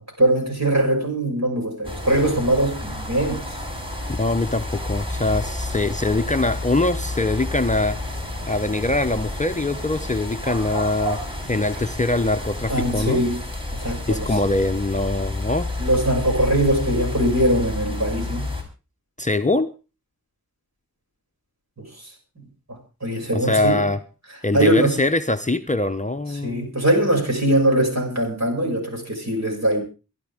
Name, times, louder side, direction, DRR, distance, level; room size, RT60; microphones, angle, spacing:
voice 1, 0.2-3.6 12.7-13.4 13.7-14.4 15.8-18.5 21.8-22.1 22.4-22.5 23.0-23.8 24.5-25.0 26.4-29.8, right 1 dB, 50° right, 1 dB, 6.4 m, -21 dB
sound 1, 1.8-18.6, left 2 dB, 15° right, 4.9 m, -30 dB
voice 2, 4.1-8.0 8.5-11.2 11.5-13.2 14.1-15.7 19.2-19.7 23.3-24.0 24.4-26.7, left 2 dB, 20° left, 7 dB, 0.8 m, -23 dB
23.5 x 11.5 x 3.5 m, 0.32 s
wide cardioid pair, 60°, 34 cm